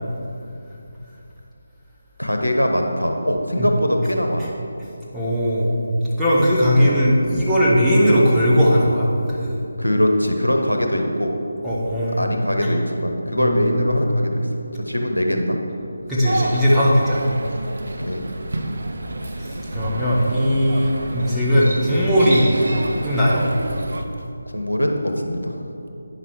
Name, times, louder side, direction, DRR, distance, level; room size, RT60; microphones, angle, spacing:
voice 1, 2.2-4.5 6.7-7.0 9.8-11.3 12.2-14.5 14.7-15.6 18.0-18.2 24.5-25.0 25.2-25.7, equal, 90° left, 3 dB, 1.1 m, -22 dB
voice 2, 5.1-5.7 6.2-9.1 9.4-9.6 11.6-12.3 13.4-13.9 16.1-17.2 19.4-22.6 23.0-23.5, equal, ahead, -11 dB, 1.2 m, -18 dB
sound 1, 16.2-24.0, right 1 dB, 55° right, 0.7 m, -29 dB
9.4 x 6.1 x 4.6 m, 2.7 s
figure-of-eight pair, 155°, 0 cm